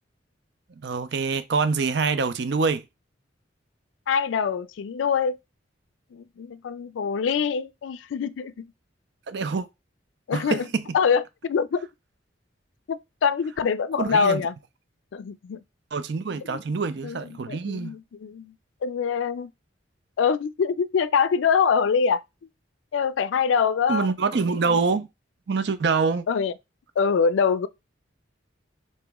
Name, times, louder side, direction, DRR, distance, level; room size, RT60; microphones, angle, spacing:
voice 1, 0.8-2.8 9.3-9.7 10.3-10.9 14.0-14.4 15.9-18.0 23.9-25.1 25.5-26.2, right 4 dB, 60° right, 0.5 m, -25 dB
voice 2, 4.1-5.4 6.1-8.7 10.3-10.7 10.9-11.8 12.9-14.5 15.1-15.6 16.5-16.6 17.0-18.5 18.8-19.5 20.2-22.2 22.9-24.1 24.7-24.8 26.3-26.5 27.0-27.7, left 6 dB, 80° left, 0.3 m, -24 dB
4.2 x 3.0 x 3.5 m
head